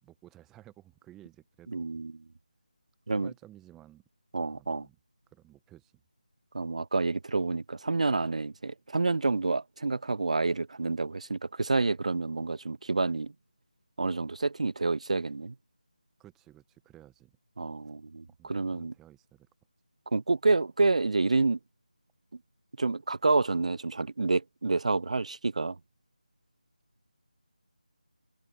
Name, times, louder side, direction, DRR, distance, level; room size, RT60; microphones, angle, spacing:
voice 1, 0.0-2.0 3.1-4.0 4.5-5.0 5.3-6.0 16.2-17.4 18.4-19.5, right 14 dB, 5° right, 1.3 m, -55 dB
voice 2, 1.7-2.1 3.1-3.3 4.3-4.9 6.5-13.3 14.0-15.5 17.6-18.9 20.1-21.6 22.8-25.8, right 3 dB, 50° right, 0.4 m, -28 dB
figure-of-eight pair, 160°, 5 cm